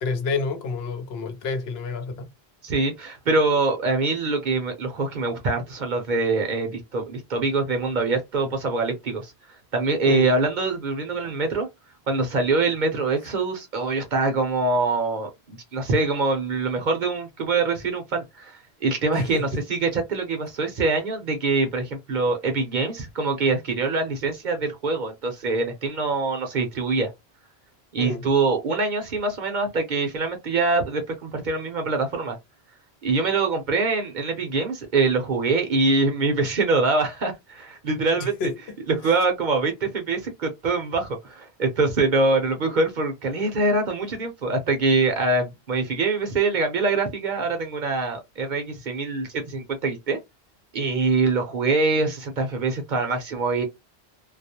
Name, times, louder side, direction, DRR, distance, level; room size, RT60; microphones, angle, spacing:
voice 1, 0.0-2.3 10.1-10.3 19.1-19.4 28.0-28.2 38.1-38.5, left 4 dB, 75° left, 0.8 m, -28 dB
voice 2, 2.6-9.3 9.7-11.7 12.1-27.1 27.9-32.4 33.0-38.5 38.9-50.2 50.7-53.6, right 3 dB, 55° right, 0.7 m, -24 dB
2.3 x 2.0 x 2.7 m
omnidirectional pair, 1.1 m